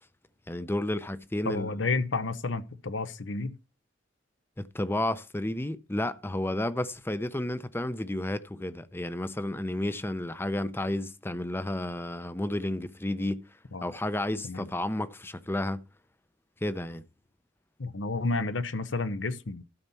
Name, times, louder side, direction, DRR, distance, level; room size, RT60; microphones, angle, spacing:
voice 1, 0.5-1.7 4.6-13.4 13.8-15.8 16.6-17.0, left 1 dB, 10° left, 0.7 m, -31 dB
voice 2, 1.4-3.6 13.7-13.9 14.4-14.7 17.8-19.6, left 3 dB, 80° left, 0.9 m, -31 dB
12.5 x 4.3 x 6.9 m
head